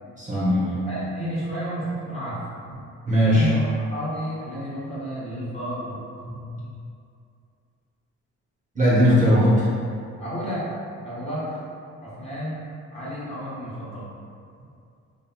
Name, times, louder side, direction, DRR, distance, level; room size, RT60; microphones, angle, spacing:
voice 1, 0.2-0.8 3.1-3.5 6.2-6.6 8.7-9.7, equal, 25° right, -9 dB, 0.8 m, -19 dB
voice 2, 0.9-2.4 3.3-6.0 10.2-10.6 11.0-11.5 12.0-12.6 12.9-14.1, equal, 20° left, -10 dB, 0.9 m, -31 dB
2.8 x 2.6 x 2.2 m, 2.5 s
cardioid pair, 90°, 30 cm